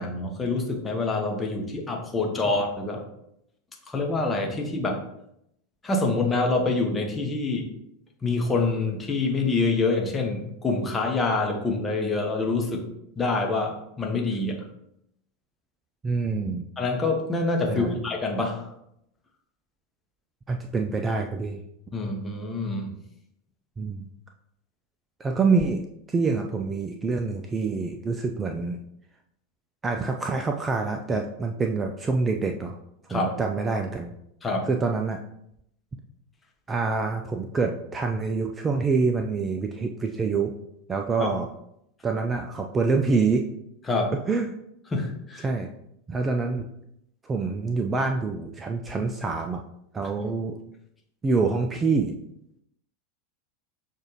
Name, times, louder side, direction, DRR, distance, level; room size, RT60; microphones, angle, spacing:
voice 1, 0.0-3.0 3.9-5.0 5.8-7.7 8.2-12.8 13.2-14.6 16.8-18.7 21.9-22.9 33.1-33.3 34.4-34.7 41.2-41.3 43.9-44.1 44.9-45.5, left 3 dB, 15° left, 1 dB, 0.9 m, -26 dB
voice 2, 16.0-16.7 17.7-18.0 20.5-21.6 23.8-24.1 25.2-28.8 29.8-32.8 33.1-34.1 34.6-35.2 36.7-40.5 40.9-41.5 42.0-43.5 44.3-44.5 45.4-45.7 46.1-46.7 47.2-49.6 49.9-50.6 51.2-52.1, right 4 dB, 20° right, 3 dB, 0.3 m, -26 dB
6.3 x 2.5 x 3.0 m, 0.78 s
figure-of-eight pair, 85°, 0 cm